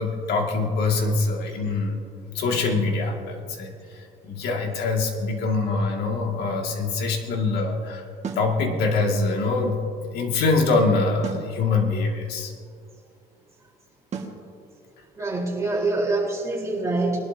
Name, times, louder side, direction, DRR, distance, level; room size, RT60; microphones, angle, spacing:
voice 1, 0.0-2.0 2.3-8.1 8.4-12.5, left 3 dB, 75° left, 1 dB, 2.2 m, -24 dB
sound 1, 8.2-8.5 11.2-11.5 14.1-14.4, right 5 dB, 40° right, 1.8 m, -33 dB
voice 2, 15.2-17.2, right 2 dB, 15° right, -4 dB, 4.0 m, -25 dB
21.5 x 12.0 x 2.8 m, 2.3 s
cardioid pair, 110°, 17 cm